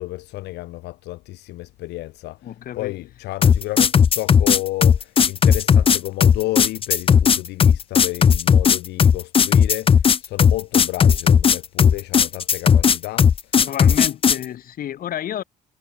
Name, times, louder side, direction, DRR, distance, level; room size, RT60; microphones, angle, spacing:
voice 1, 0.0-2.5 2.8-13.5, left 18 dB, 85° left, 1.9 m, -31 dB
voice 2, 2.4-2.9 13.6-15.4, left 11 dB, 60° left, 3.5 m, -30 dB
sound 1, 3.4-14.4, left 7 dB, 35° left, 0.8 m, -15 dB
cardioid pair, 110°, 17 cm